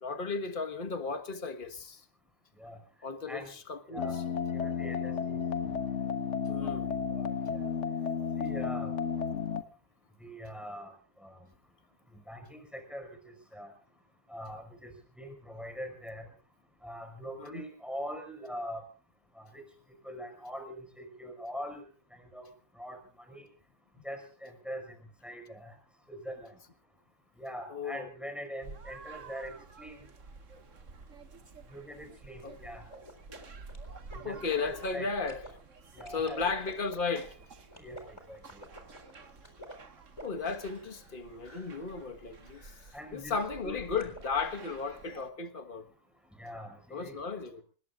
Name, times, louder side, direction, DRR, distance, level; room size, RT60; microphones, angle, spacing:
voice 1, 0.0-2.0 3.0-4.2 6.5-6.9 17.4-17.6 27.7-28.1 32.4-32.6 34.2-35.4 36.1-37.3 40.2-42.7 43.1-45.9 46.9-47.6, left 4 dB, 35° left, 1.6 m, -35 dB
voice 2, 3.9-4.2 4.5-5.4 7.1-7.3 8.4-8.9 10.2-10.9 11.2-11.3 12.3-13.1 13.5-13.7 14.3-14.9 15.2-16.3 16.8-18.8 19.4-19.6 20.0-21.8 22.2-22.5 22.8-23.0 23.3-23.4 24.0-24.8 25.2-25.7 26.1-26.5 27.4-30.0 31.7-32.8 34.1-34.4 34.6-35.1 35.9-36.5 37.8-38.4 42.9-43.4 43.6-43.8 46.4-47.2, equal, ahead, 5.2 m, -42 dB
sound 1, 4.0-9.6, left 6 dB, 50° left, 1.5 m, -33 dB
sound 2, 28.6-45.3, right 4 dB, 55° right, 1.9 m, -51 dB
sound 3, 32.9-35.5 36.0-41.2 41.4-41.8 42.4-43.0 43.9-44.4, equal, 15° left, 4.0 m, -50 dB
26.5 x 20.0 x 2.5 m
omnidirectional pair, 1.6 m